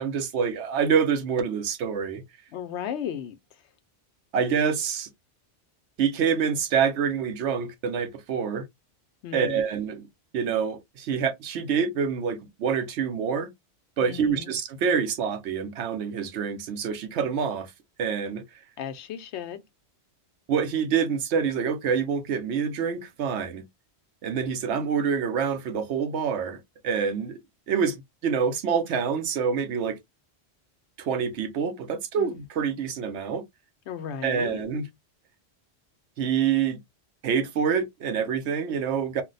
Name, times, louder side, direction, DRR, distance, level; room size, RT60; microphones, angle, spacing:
voice 1, 0.0-2.2 4.3-5.1 6.0-8.7 9.3-10.1 10.3-13.5 14.0-17.7 18.0-18.4 20.5-23.6 24.2-27.4 27.7-30.0 31.0-33.4 34.2-34.9 36.2-36.8 37.2-39.2, right 6 dB, 80° right, 0.9 m, -26 dB
voice 2, 2.5-3.4 9.2-9.6 14.0-14.5 18.8-19.6 32.2-32.3 33.9-34.7, left 8 dB, 80° left, 0.9 m, -35 dB
2.5 x 2.1 x 3.9 m
omnidirectional pair, 1.1 m